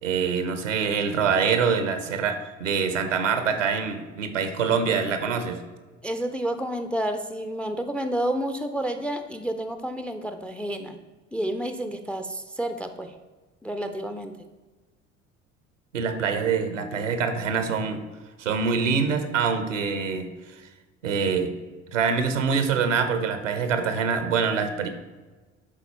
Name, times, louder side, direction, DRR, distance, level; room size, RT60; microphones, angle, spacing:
voice 1, 0.0-5.6 15.9-18.0 18.4-20.3 21.0-21.5 21.9-24.9, right 6 dB, 75° right, 8 dB, 0.8 m, -25 dB
voice 2, 6.0-11.0 11.3-13.1 13.6-14.3, right 1 dB, 5° left, 8 dB, 0.4 m, -30 dB
11.0 x 4.1 x 4.4 m, 1.3 s
figure-of-eight pair, 60°, 38 cm